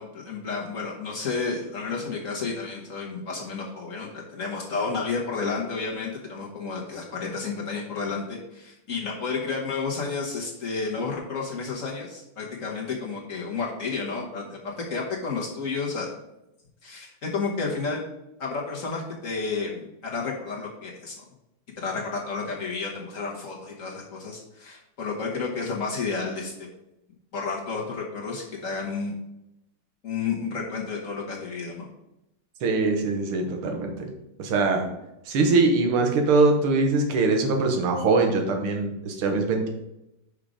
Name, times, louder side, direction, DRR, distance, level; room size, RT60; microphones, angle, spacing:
voice 1, 0.0-16.1 16.8-18.0 18.4-21.2 21.8-26.7 27.3-29.1 30.0-31.9, left 4 dB, 45° left, -3 dB, 1.2 m, -31 dB
voice 2, 32.6-34.1 34.4-34.9 35.3-39.7, right 3 dB, 80° right, 4 dB, 1.9 m, -22 dB
5.5 x 5.1 x 4.9 m, 0.88 s
omnidirectional pair, 2.3 m